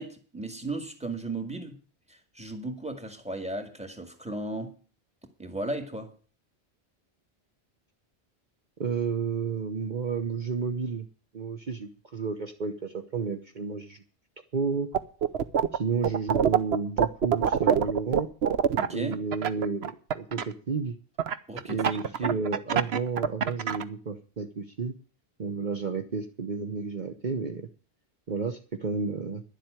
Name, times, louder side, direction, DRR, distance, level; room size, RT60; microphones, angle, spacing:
voice 1, 0.0-1.8 2.1-4.8 5.4-6.1 18.7-19.2 21.5-22.4, right 2 dB, 5° right, 2.0 m, -36 dB
voice 2, 8.8-11.1 11.3-14.0 14.5-14.9 15.7-18.3 18.9-21.0 21.7-24.9 25.4-27.7 28.3-29.4, right 5 dB, 45° right, 1.1 m, -31 dB
sound 1, 14.9-15.8 16.0-20.4 21.2-23.8, right 8 dB, 70° right, 1.1 m, -24 dB
11.5 x 7.7 x 9.1 m
omnidirectional pair, 1.1 m